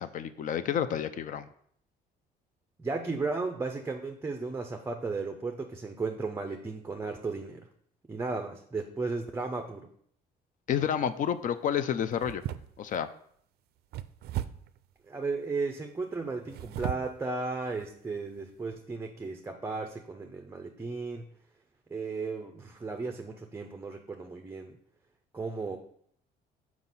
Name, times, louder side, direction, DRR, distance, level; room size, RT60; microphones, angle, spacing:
voice 1, 0.0-1.5 10.7-12.4 12.8-13.1, left 9 dB, 50° left, 12 dB, 0.4 m, -30 dB
voice 2, 2.8-7.6 8.1-9.9 15.0-21.3 21.9-24.8 25.3-25.8, right 3 dB, 15° right, 5 dB, 0.5 m, -35 dB
sound 1, 10.7-11.1 12.1-13.0 13.9-14.8 16.4-17.2 17.8-17.9 18.4-18.5, right 12 dB, 70° right, 0.4 m, -37 dB
5.6 x 4.8 x 4.0 m, 0.65 s
cardioid pair, 110°, 17 cm